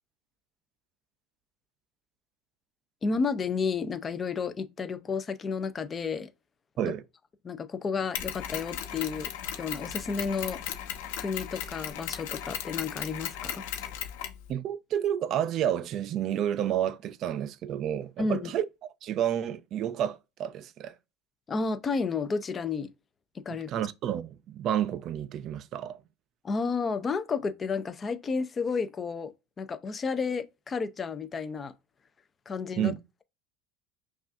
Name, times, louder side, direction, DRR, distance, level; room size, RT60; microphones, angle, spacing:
voice 1, 3.0-6.3 6.8-6.9 7.4-9.3 9.6-10.6 11.2-13.9 18.2-18.5 21.5-22.9 23.5-23.7 26.4-29.3 29.6-31.7 32.5-32.9, left 5 dB, 20° left, 0.5 m, -31 dB
Mechanisms, 8.1-14.4, left 10 dB, 75° left, 0.9 m, -36 dB
voice 2, 14.5-18.7 19.0-20.9 23.5-26.0 32.8-33.0, right 10 dB, 40° right, 0.4 m, -30 dB
5.7 x 2.4 x 2.5 m
supercardioid pair, 140°, 0 cm